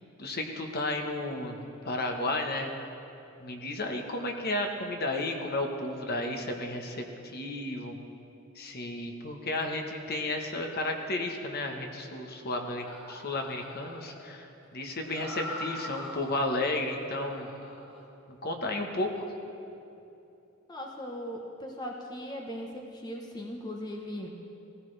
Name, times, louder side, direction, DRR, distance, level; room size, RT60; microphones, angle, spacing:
voice 1, 0.2-1.6 1.8-2.7 3.4-8.0 8.5-17.5 18.4-19.3, left 2 dB, 45° left, 3 dB, 1.2 m, -33 dB
sound 1, 12.8-16.6 17.0-18.0, left 1 dB, 85° left, 2.0 m, -43 dB
voice 2, 20.7-24.3, equal, 20° left, 0 dB, 1.0 m, -39 dB
19.5 x 15.5 x 3.3 m, 2.8 s
head